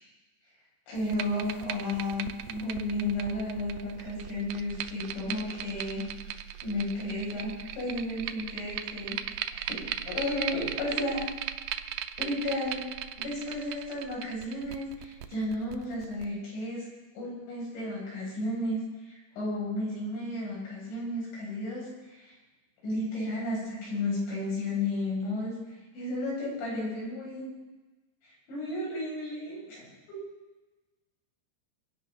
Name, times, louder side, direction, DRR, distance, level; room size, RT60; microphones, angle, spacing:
voice 1, 0.9-6.1 6.6-11.2 12.2-12.8 13.2-16.9 17.1-18.8 19.1-22.3 22.8-25.5 25.9-27.4 28.5-30.2, left 1 dB, 85° left, -6 dB, 9.8 m, -33 dB
sound 1, 1.0-16.2, right 11 dB, 90° right, 2.0 m, -38 dB
25.5 x 9.1 x 5.8 m, 1.2 s
omnidirectional pair, 5.1 m